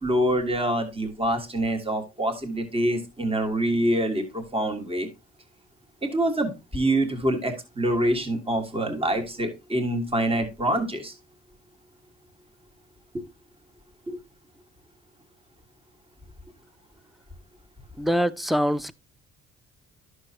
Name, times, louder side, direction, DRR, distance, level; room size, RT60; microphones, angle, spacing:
voice 1, 0.0-5.1 6.0-11.1 14.1-14.2, right 1 dB, 20° right, 1.6 m, -25 dB
voice 2, 18.0-18.9, equal, ahead, 0.3 m, -24 dB
10.5 x 6.4 x 2.8 m
cardioid pair, 90°, 30 cm